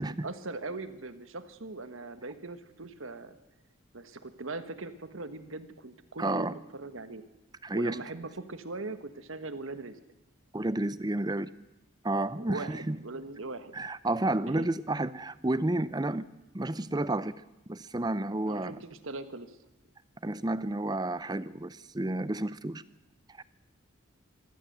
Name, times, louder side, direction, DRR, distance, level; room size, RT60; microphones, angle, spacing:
voice 1, 0.0-3.4 3.9-7.2 7.7-10.0 12.3-13.7 14.5-14.7 18.5-19.6, right 3 dB, 70° right, 11 dB, 1.4 m, -40 dB
voice 2, 6.2-6.5 7.6-8.0 10.5-11.5 12.0-13.0 13.7-16.3 16.5-17.3 17.7-18.8 20.2-22.8 23.4-23.5, right 2 dB, 20° right, 16 dB, 0.6 m, -31 dB
24.5 x 15.0 x 8.0 m, 0.98 s
head